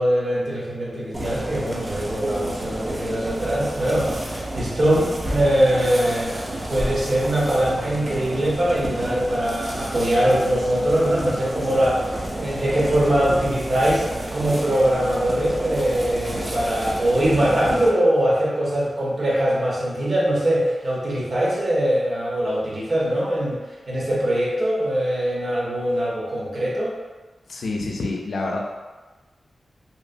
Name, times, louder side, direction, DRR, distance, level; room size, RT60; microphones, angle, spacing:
voice 1, 0.0-6.4 6.7-12.1 12.3-14.0 14.3-23.6 23.9-26.9, right 1 dB, 45° right, -6 dB, 0.8 m, -22 dB
sound 1, 1.1-17.9, right 1 dB, 20° right, 0.4 m, -31 dB
voice 2, 27.5-28.6, left 2 dB, 80° left, -1 dB, 0.4 m, -27 dB
2.9 x 2.0 x 2.5 m, 1.2 s
wide cardioid pair, 150°, 0 cm